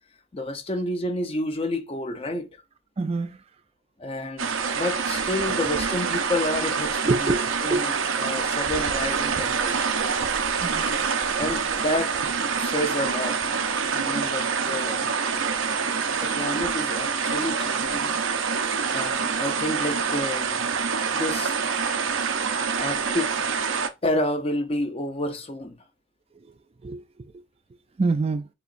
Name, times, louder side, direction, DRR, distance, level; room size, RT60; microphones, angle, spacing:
voice 1, 0.3-2.5 4.0-4.5 4.7-7.3 7.6-9.9 11.4-12.2 12.6-13.6 13.9-15.1 16.2-18.1 18.9-20.7 21.1-21.5 22.8-23.4 24.0-25.7, left 1 dB, 30° left, 0.7 m, -29 dB
voice 2, 3.0-3.4 7.1-8.1 10.6-11.1 19.7-19.8 26.8-27.0 28.0-28.5, right 3 dB, 30° right, 0.3 m, -26 dB
sound 1, 4.4-23.9, right 6 dB, 70° right, 0.6 m, -26 dB
6.8 x 3.0 x 2.5 m
head